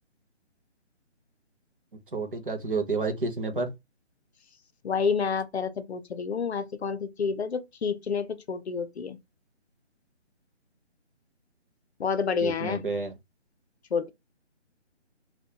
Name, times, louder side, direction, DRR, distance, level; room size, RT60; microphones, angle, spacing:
voice 1, 2.1-3.7 12.4-13.1, right 3 dB, 45° right, 0.5 m, -30 dB
voice 2, 4.8-9.2 12.0-12.8 13.9-14.1, left 5 dB, 65° left, 0.5 m, -29 dB
2.2 x 2.1 x 2.7 m
hypercardioid pair, 175°, 36 cm